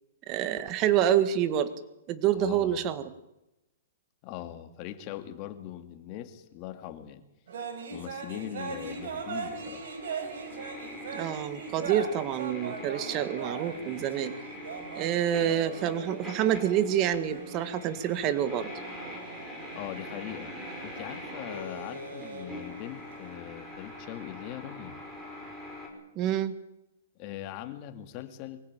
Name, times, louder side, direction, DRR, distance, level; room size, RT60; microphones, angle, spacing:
voice 1, 0.3-1.7 2.1-3.1 11.1-14.3 15.0-18.7 26.2-26.6, right 10 dB, 30° right, 11 dB, 1.8 m, -27 dB
voice 2, 2.3-3.0 4.2-7.2 7.9-9.9 19.7-20.5 20.8-25.0 27.2-28.6, left 12 dB, 35° left, 7 dB, 2.5 m, -41 dB
sound 1, 7.5-23.4, right 5 dB, 70° right, 6.1 m, -41 dB
sound 2, 8.6-25.9, left 1 dB, 10° right, 6.2 m, -44 dB
24.0 x 16.0 x 9.1 m, 0.90 s
hypercardioid pair, 155°, 0 cm